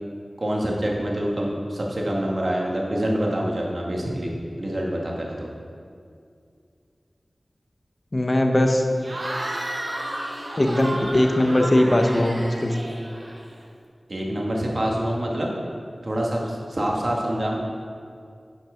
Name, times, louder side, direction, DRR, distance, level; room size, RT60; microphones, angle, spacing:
voice 1, 0.4-5.5 14.1-15.5 16.0-17.6, right 1 dB, 50° right, -2 dB, 1.8 m, -26 dB
voice 2, 8.1-8.8 10.6-12.7, left 1 dB, 35° left, 3 dB, 1.0 m, -20 dB
Cheering / Crowd, 9.0-13.6, right 1 dB, 75° right, 1.7 m, -32 dB
11.5 x 6.0 x 5.1 m, 2.3 s
wide cardioid pair, 75°, 0 cm